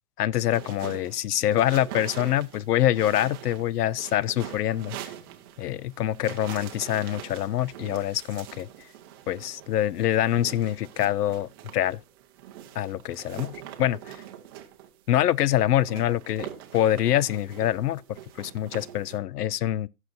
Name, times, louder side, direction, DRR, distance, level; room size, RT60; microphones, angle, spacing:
voice 1, 0.2-5.0 5.6-8.7 9.3-12.0 12.8-14.2 15.1-19.9, left 12 dB, 85° left, 0.6 m, -25 dB
sound 1, 0.5-19.2, right 11 dB, 15° right, 0.5 m, -43 dB
17.0 x 6.3 x 2.6 m
hypercardioid pair, 145°, 46 cm